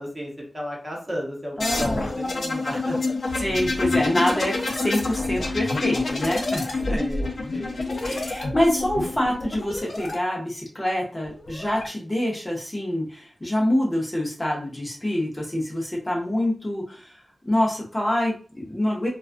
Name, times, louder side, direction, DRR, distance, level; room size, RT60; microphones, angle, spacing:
voice 1, 0.0-3.1 6.9-7.8, equal, 20° right, -2 dB, 0.8 m, -34 dB
sound 1, 1.6-10.1 11.3-11.9, left 3 dB, 65° left, 0.5 m, -27 dB
voice 2, 1.6-2.7 3.4-7.0 8.0-17.2 17.5-19.1, left 1 dB, 20° left, -3 dB, 0.6 m, -26 dB
2.3 x 2.3 x 2.4 m, 0.40 s
wide cardioid pair, 95°, 0 cm